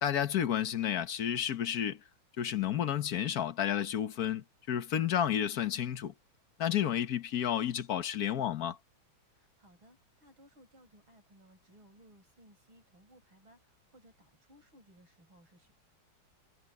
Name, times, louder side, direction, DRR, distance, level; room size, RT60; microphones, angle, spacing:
voice 1, 0.0-2.0 2.4-6.1 6.6-8.8, left 10 dB, 55° left, 1.5 m, -31 dB
voice 2, 9.3-15.7, right 1 dB, 85° right, 7.1 m, -61 dB
omnidirectional pair, 2.2 m